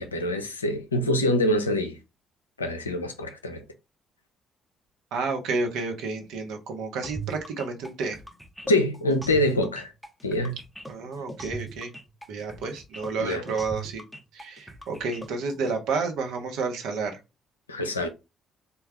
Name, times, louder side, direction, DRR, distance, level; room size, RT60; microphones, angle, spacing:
voice 1, 0.0-2.0 2.6-3.6 8.7-9.9 10.2-10.5 13.2-13.4 17.7-18.1, left 1 dB, 85° left, 0.4 m, -25 dB
voice 2, 5.1-8.2 10.9-11.9 12.3-14.0 14.3-17.1, right 4 dB, 65° right, 0.8 m, -30 dB
sound 1, 7.0-15.7, right 2 dB, ahead, 0.7 m, -40 dB
3.7 x 2.2 x 3.3 m
figure-of-eight pair, 45°, 0 cm